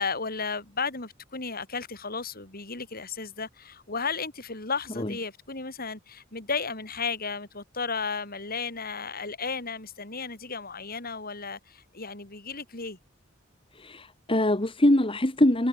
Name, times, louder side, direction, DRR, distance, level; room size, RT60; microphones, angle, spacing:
voice 1, 0.0-13.0, left 4 dB, 50° left, 5.7 m, -34 dB
voice 2, 13.8-15.7, left 1 dB, 25° left, 1.8 m, -23 dB
head